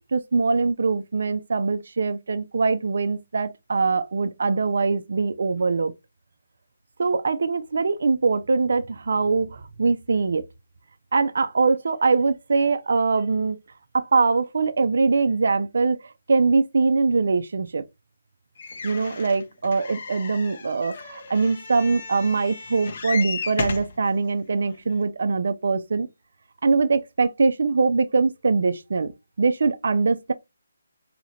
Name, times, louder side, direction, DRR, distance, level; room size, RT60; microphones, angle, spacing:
voice 1, 0.1-5.9 7.0-10.4 11.1-13.6 13.9-17.8 18.8-26.1 26.6-29.1 29.4-30.3, right 4 dB, 60° right, 0.6 m, -22 dB
sound 1, 18.6-24.0 24.7-24.8 25.0-25.1, left 4 dB, 50° left, 0.9 m, -34 dB
4.9 x 2.9 x 2.7 m
figure-of-eight pair, 150°, 0 cm